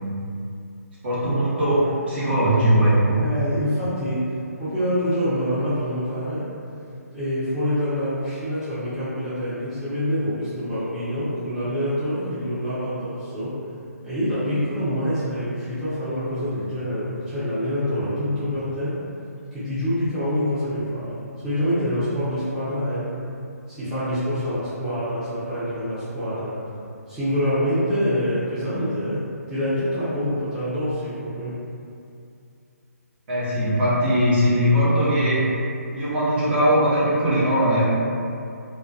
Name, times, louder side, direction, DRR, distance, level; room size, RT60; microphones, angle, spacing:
voice 1, 1.0-3.3 33.3-35.5 35.9-37.8, equal, 40° right, -9 dB, 0.7 m, -20 dB
voice 2, 3.2-4.3 4.6-6.5 7.1-13.6 14.0-19.0 19.6-23.1 23.7-26.6 27.1-31.6, equal, 5° right, -16 dB, 0.5 m, -26 dB
2.2 x 2.1 x 2.5 m, 2.5 s
figure-of-eight pair, 150°, 9 cm